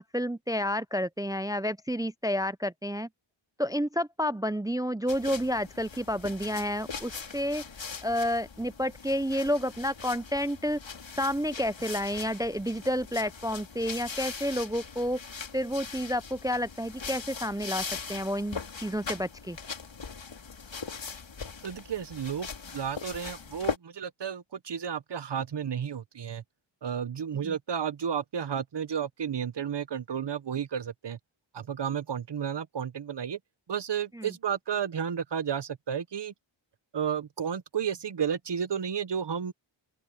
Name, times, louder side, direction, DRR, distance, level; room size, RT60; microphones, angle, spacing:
voice 1, 0.0-3.1 3.6-7.6 8.0-10.8 11.2-15.2 15.5-19.6 27.4-27.6 34.1-34.3, equal, 10° right, 0.5 m, -30 dB
sound 1, 5.1-23.8, left 5 dB, 65° left, 3.6 m, -40 dB
voice 2, 21.6-26.4 26.8-31.2 31.5-33.4 33.7-36.3 36.9-39.5, right 8 dB, 55° right, 1.1 m, -32 dB
open air
cardioid pair, 65°, 49 cm